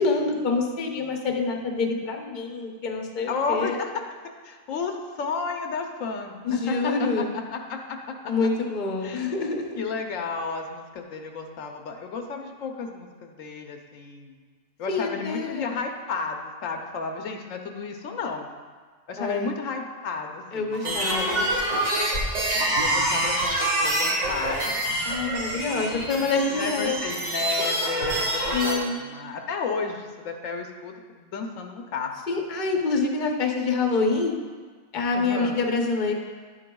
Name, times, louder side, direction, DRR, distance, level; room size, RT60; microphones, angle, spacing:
voice 1, 0.0-3.8 6.4-7.3 8.3-9.8 14.9-15.8 19.2-19.5 20.5-21.5 25.0-27.0 28.5-29.0 32.3-34.4 34.9-36.1, left 3 dB, 40° left, 2 dB, 0.9 m, -26 dB
voice 2, 3.3-3.9 4.4-8.3 9.0-9.4 9.8-14.3 14.8-18.5 19.1-21.5 22.7-24.8 25.5-32.1 35.1-35.6, left 5 dB, 80° left, 3 dB, 1.1 m, -33 dB
sound 1, 20.7-28.7, right 1 dB, 65° right, 2.1 m, -26 dB
10.5 x 8.8 x 2.3 m, 1.5 s
omnidirectional pair, 1.3 m